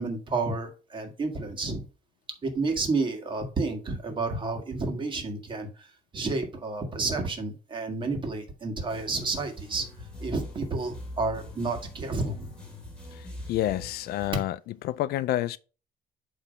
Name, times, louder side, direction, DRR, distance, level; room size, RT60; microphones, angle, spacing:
voice 1, 0.0-1.9 2.4-5.9 6.1-9.9 10.2-12.5, right 3 dB, 30° right, 1.8 m, -30 dB
sound 1, 8.8-14.3, left 1 dB, 5° left, 2.5 m, -43 dB
voice 2, 13.1-14.6 14.8-15.6, left 14 dB, 70° left, 0.4 m, -29 dB
8.4 x 3.2 x 5.2 m
cardioid pair, 145°, 17 cm